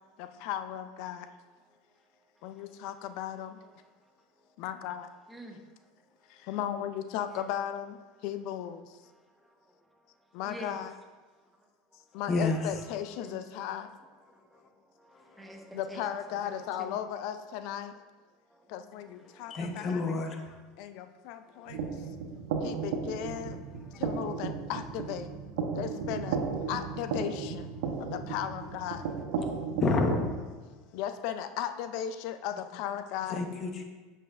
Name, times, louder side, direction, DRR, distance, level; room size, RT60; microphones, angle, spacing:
voice 1, 0.2-1.3 2.4-3.5 4.6-5.1 6.5-8.0 8.2-8.8 10.3-10.9 12.1-13.9 15.7-17.9 18.7-20.1 20.8-21.8 22.6-23.6 24.0-25.3 25.7-26.4 26.7-27.6 28.0-29.0 30.9-33.4, left 10 dB, 65° left, 10 dB, 0.4 m, -36 dB
voice 2, 2.4-2.8 3.6-4.1 5.3-5.6 7.3-7.5 9.0-10.8 12.1-12.8 13.2-13.9 14.3-17.0 18.5-19.8, right 1 dB, 5° right, 2 dB, 1.0 m, -50 dB
voice 3, 12.3-12.6 19.5-20.4 29.8-30.3 33.3-33.8, left 3 dB, 35° left, 4 dB, 1.0 m, -28 dB
sound 1, 21.7-30.3, right 5 dB, 75° right, 1.0 m, -34 dB
7.6 x 6.5 x 2.5 m, 1.3 s
supercardioid pair, 100°, 0 cm